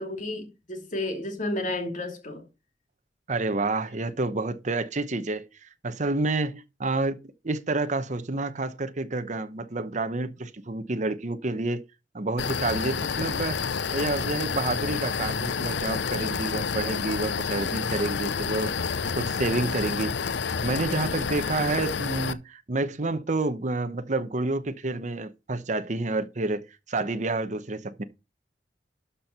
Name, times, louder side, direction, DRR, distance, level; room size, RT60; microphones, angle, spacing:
voice 1, 0.0-2.4, left 1 dB, 45° left, 2.6 m, -32 dB
voice 2, 3.3-11.8 12.1-20.2 20.6-28.0, right 2 dB, 45° right, 0.8 m, -29 dB
sound 1, 12.4-22.3, left 6 dB, 75° left, 0.6 m, -29 dB
12.5 x 4.5 x 5.4 m
head